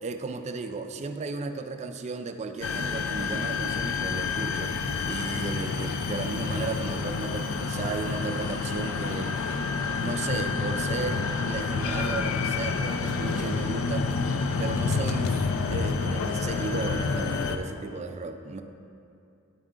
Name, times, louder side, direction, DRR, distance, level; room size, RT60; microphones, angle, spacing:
voice 1, 0.0-4.8 5.1-9.3 10.0-14.1 14.6-15.4 15.7-18.6, right 4 dB, 30° right, 7 dB, 0.3 m, -34 dB
sound 1, 2.6-17.6, left 4 dB, 65° left, 0.4 m, -28 dB
10.5 x 3.6 x 3.7 m, 2.7 s
head